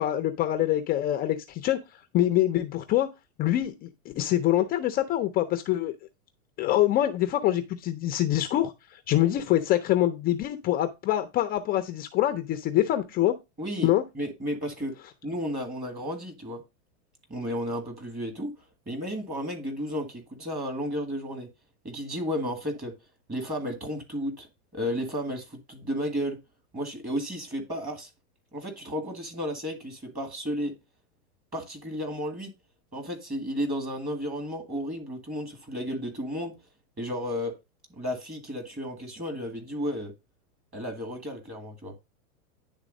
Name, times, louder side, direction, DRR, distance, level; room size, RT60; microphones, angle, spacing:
voice 1, 0.0-1.8 2.1-3.1 3.4-5.9 6.6-13.3 13.8-14.0, left 13 dB, 20° left, 0.4 m, -25 dB
voice 2, 13.6-13.9 14.2-14.9 15.2-16.6 17.3-18.5 18.9-21.5 21.8-22.9 23.3-24.5 24.7-26.4 26.7-28.1 28.5-30.7 31.5-32.5 32.9-36.5 37.0-37.5 37.9-40.1 40.7-41.9, equal, 20° right, 1.9 m, -33 dB
10.0 x 3.5 x 5.2 m
hypercardioid pair, 130°, 44 cm